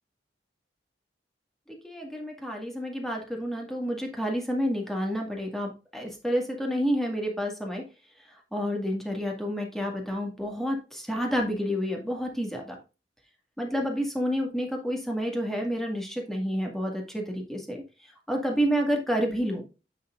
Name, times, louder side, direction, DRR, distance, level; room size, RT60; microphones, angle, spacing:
voice 1, 1.8-7.8 8.5-12.8 13.6-17.8 18.3-19.6, equal, ahead, 1 dB, 1.8 m, -29 dB
9.9 x 5.9 x 2.4 m, 0.30 s
head